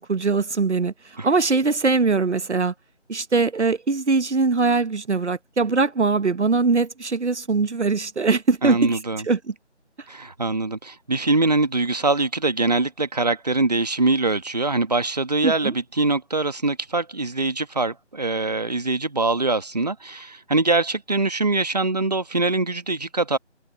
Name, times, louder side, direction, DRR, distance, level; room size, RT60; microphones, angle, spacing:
voice 1, 0.0-2.7 3.1-9.0 9.3-9.5 15.4-15.7, right 4 dB, 70° right, 1.1 m, -21 dB
voice 2, 8.6-9.2 10.1-23.4, right 3 dB, 35° right, 1.3 m, -23 dB
figure-of-eight pair, 175°, 35 cm